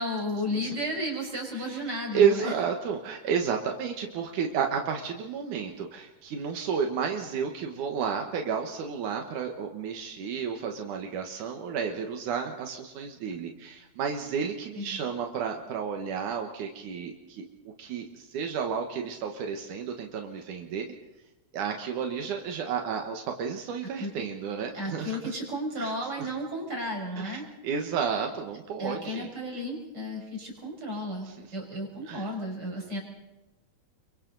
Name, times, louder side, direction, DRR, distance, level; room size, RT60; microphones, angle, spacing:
voice 1, 0.0-2.5 14.8-15.0 24.0-24.1 24.7-27.5 28.8-33.0, equal, 30° right, 0 dB, 6.2 m, -33 dB
voice 2, 2.1-17.4 17.8-20.9 21.5-25.2 25.8-25.9 26.2-26.3 27.2-29.3 31.3-31.5 32.1-32.3, right 6 dB, 80° right, 3 dB, 2.9 m, -31 dB
28.0 x 24.0 x 4.0 m, 1.0 s
omnidirectional pair, 3.5 m